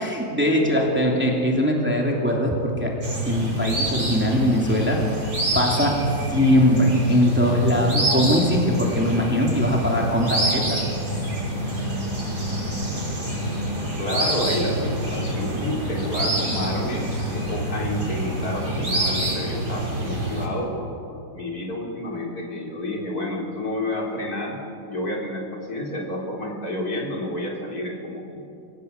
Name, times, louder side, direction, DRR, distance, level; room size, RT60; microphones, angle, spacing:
voice 1, 0.0-2.9 3.3-5.0 5.5-6.0 6.3-10.8, equal, 5° right, -1 dB, 3.0 m, -21 dB
sound 1, 3.0-20.5, right 1 dB, 55° right, 6.9 m, -27 dB
voice 2, 14.0-24.6 24.9-28.4, left 1 dB, 50° left, -1 dB, 4.0 m, -30 dB
25.5 x 18.0 x 8.3 m, 2.5 s
omnidirectional pair, 2.1 m